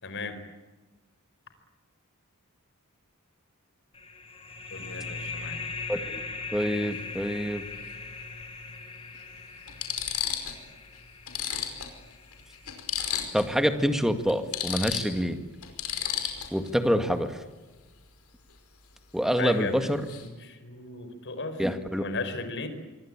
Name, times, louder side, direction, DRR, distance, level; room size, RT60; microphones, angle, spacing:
voice 1, 0.0-0.4 4.7-5.6 19.4-21.6 22.0-22.7, left 3 dB, 55° left, 9 dB, 4.8 m, -36 dB
sound 1, 3.9-13.2, left 4 dB, 25° left, 3.8 m, -40 dB
voice 2, 5.9-6.2 6.5-7.6 13.3-15.4 16.5-17.4 19.1-20.0 21.6-22.0, equal, ahead, 8 dB, 2.1 m, -26 dB
sound 2, 6.7-6.9 8.4-8.5 9.2-9.3 9.7-10.6 10.9-11.0 11.3-13.6 13.9-14.0 14.3-16.7 19.3-19.5 19.8-20.3, left 9 dB, 90° left, 5.1 m, -33 dB
26.5 x 22.5 x 8.9 m, 1.2 s
head